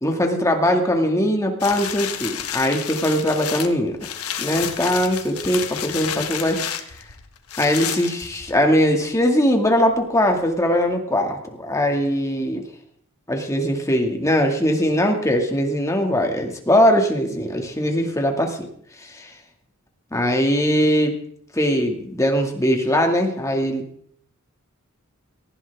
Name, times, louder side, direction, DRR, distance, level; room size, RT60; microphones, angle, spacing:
voice 1, 0.0-4.0 4.4-6.7 7.6-12.6 13.3-18.7 19.0-19.3 20.1-21.2 21.5-23.8, equal, 15° left, 3 dB, 2.1 m, -21 dB
sound 1, 1.6-8.8 9.3-9.4, left 9 dB, 85° left, 1.5 m, -30 dB
18.5 x 15.5 x 3.6 m, 0.64 s
head